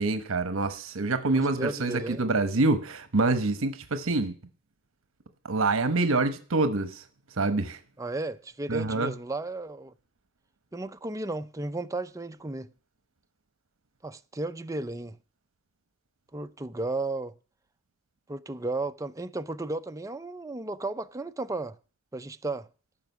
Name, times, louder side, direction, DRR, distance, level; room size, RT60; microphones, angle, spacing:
voice 1, 0.0-4.3 5.4-7.0 7.4-7.8 8.7-9.1, right 3 dB, 70° right, 1.0 m, -26 dB
voice 2, 1.6-2.2 8.0-9.9 10.7-12.7 14.0-15.2 16.3-17.3 18.3-21.8 22.1-22.7, right 2 dB, 15° right, 0.5 m, -34 dB
14.0 x 5.9 x 8.1 m
head